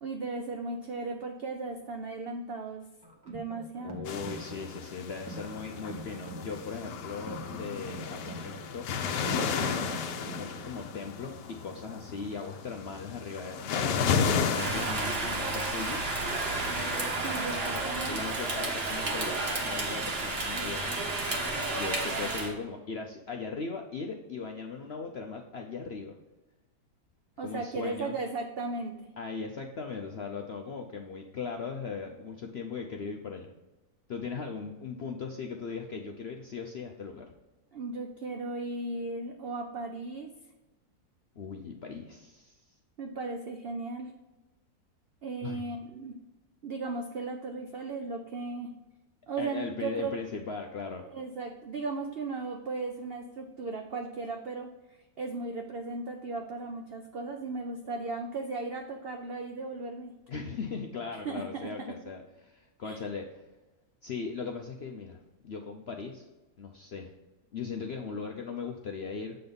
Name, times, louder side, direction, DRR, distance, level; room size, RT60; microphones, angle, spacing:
voice 1, 0.0-2.9 3.2-4.0 17.2-18.2 27.4-29.1 37.7-40.3 43.0-44.1 45.2-46.2 46.6-48.7 49.3-50.1 51.1-60.1 61.2-61.9 62.8-63.0, right 3 dB, 75° right, 4 dB, 0.5 m, -36 dB
sound 1, 3.0-11.0, right 3 dB, 20° right, 0.8 m, -45 dB
voice 2, 3.8-8.9 9.2-10.0 10.4-14.1 14.5-16.0 17.7-21.2 21.7-26.1 27.4-28.2 29.2-33.5 34.1-37.3 41.4-42.6 45.4-45.6 49.4-51.0 60.3-63.4 64.0-66.3 66.6-67.1 67.5-69.4, left 5 dB, 65° left, 2 dB, 0.6 m, -38 dB
sound 2, 4.0-17.2, left 6 dB, 85° left, 1.3 m, -34 dB
Rain, 14.5-22.5, right 2 dB, 40° right, 1.4 m, -31 dB
7.7 x 4.0 x 5.2 m, 1.1 s
omnidirectional pair, 1.8 m